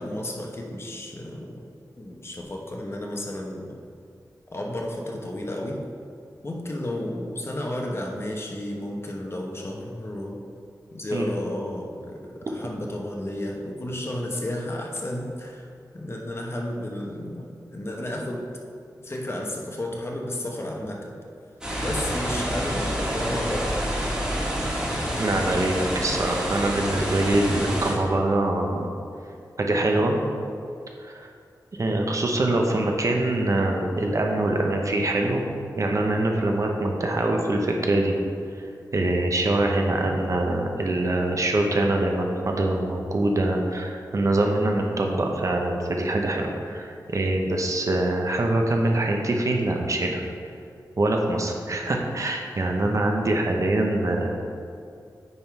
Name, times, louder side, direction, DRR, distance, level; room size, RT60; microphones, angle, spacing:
voice 1, 0.0-1.5 2.0-3.8 4.5-5.8 6.4-10.4 10.9-15.7 15.9-17.5 17.7-18.4 19.0-21.1 21.8-23.8 53.5-53.6, left 1 dB, 35° left, 0 dB, 1.0 m, -32 dB
sound 1, 21.6-27.9, equal, 10° right, 1.8 m, -28 dB
voice 2, 25.2-28.9 29.6-30.2 31.0-31.3 31.7-35.4 35.8-38.2 38.9-50.2 51.0-54.3, right 2 dB, 50° right, 1 dB, 0.8 m, -24 dB
9.6 x 3.7 x 4.6 m, 2.4 s
wide cardioid pair, 105°, 7 cm